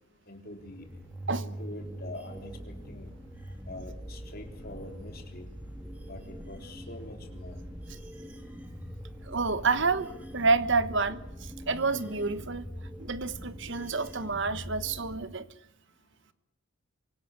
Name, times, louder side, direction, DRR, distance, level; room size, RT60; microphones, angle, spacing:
voice 1, 0.3-0.9 1.4-3.1 3.7-5.5 6.1-7.6, left 1 dB, 45° left, 3.9 m, -45 dB
sound 1, 0.6-15.2, equal, 5° right, 2.8 m, -43 dB
voice 2, 9.2-12.7 13.0-15.5, right 4 dB, 55° right, 1.2 m, -29 dB
25.0 x 18.0 x 9.7 m
head